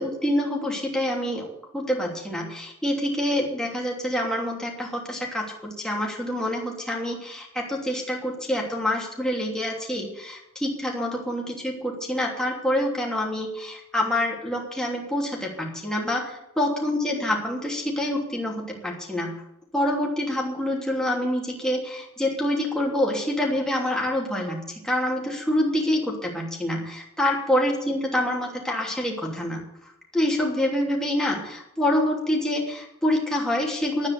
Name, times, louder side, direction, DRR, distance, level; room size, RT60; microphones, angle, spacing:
voice 1, 0.0-1.5 1.7-19.3 19.7-29.6 30.1-34.1, left 1 dB, 5° left, -2 dB, 2.9 m, -26 dB
11.5 x 9.4 x 8.2 m, 0.84 s
head